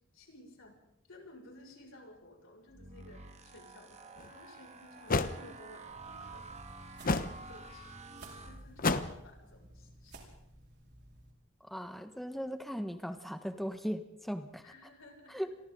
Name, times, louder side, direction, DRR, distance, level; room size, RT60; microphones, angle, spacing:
voice 1, 0.1-0.8 1.1-7.0 7.5-7.9 8.4-10.2 14.6-15.4, left 1 dB, 65° left, 1 dB, 6.6 m, -55 dB
sound 1, 2.7-9.2, right 3 dB, 35° right, 1.9 m, -50 dB
sound 2, 4.2-4.3 5.1-5.4 7.0-7.4 8.8-9.2, left 3 dB, 40° left, 1.0 m, -29 dB
sound 3, 5.9-11.3, right 1 dB, 55° right, 5.1 m, -56 dB
voice 2, 11.6-14.7 15.3-15.5, equal, ahead, 7 dB, 1.5 m, -38 dB
29.5 x 23.0 x 4.0 m, 0.80 s
head